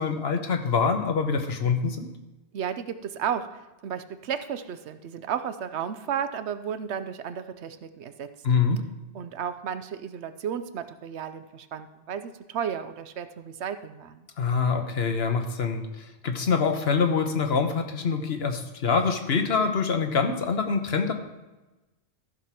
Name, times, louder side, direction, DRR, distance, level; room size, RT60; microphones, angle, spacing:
voice 1, 0.0-2.1 8.4-8.8 14.4-21.1, left 5 dB, 70° left, 5 dB, 1.3 m, -25 dB
voice 2, 2.5-8.3 9.1-14.3, right 8 dB, 85° right, 11 dB, 1.0 m, -33 dB
14.0 x 4.7 x 5.9 m, 1.1 s
omnidirectional pair, 1.1 m